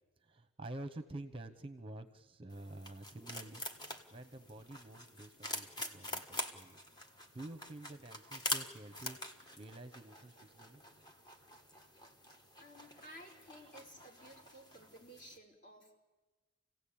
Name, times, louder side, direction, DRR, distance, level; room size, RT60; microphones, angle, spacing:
voice 1, 0.2-6.8 7.3-10.8, right 2 dB, 25° right, 11 dB, 0.9 m, -49 dB
sound 1, 2.5-15.4, equal, 20° left, 1.6 m, -46 dB
voice 2, 12.6-16.0, equal, 40° left, 0 dB, 5.0 m, -55 dB
27.0 x 17.0 x 8.6 m, 1.2 s
head